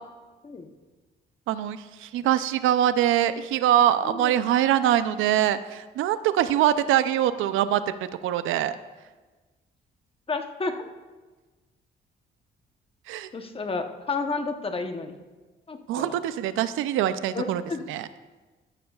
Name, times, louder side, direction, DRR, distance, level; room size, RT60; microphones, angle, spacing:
voice 1, 1.5-7.9 8.2-8.8 13.1-13.3 15.9-17.6 17.9-18.1, right 11 dB, 85° right, 13 dB, 0.5 m, -23 dB
voice 2, 4.0-4.3 10.3-10.9 13.3-15.1 15.7-16.2 17.3-17.8, left 3 dB, 30° left, 6 dB, 0.9 m, -31 dB
14.0 x 12.0 x 2.4 m, 1.3 s
cardioid pair, 90°, 20 cm